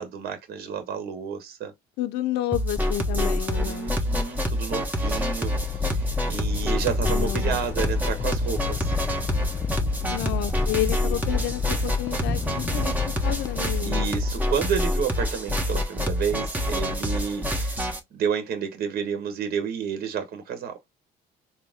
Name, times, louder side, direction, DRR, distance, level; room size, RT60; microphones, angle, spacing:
voice 1, 0.0-1.7 3.6-5.5 5.9-9.0 13.8-17.8 18.1-20.7, right 7 dB, 65° right, 1.0 m, -30 dB
voice 2, 2.0-4.0 7.1-7.9 10.0-13.0 13.2-14.2, left 14 dB, 85° left, 0.4 m, -30 dB
sound 1, 2.5-18.0, left 1 dB, 10° right, 1.1 m, -27 dB
sound 2, 5.5-14.4, left 7 dB, 20° left, 0.4 m, -32 dB
4.1 x 2.1 x 3.6 m
cardioid pair, 110°, 17 cm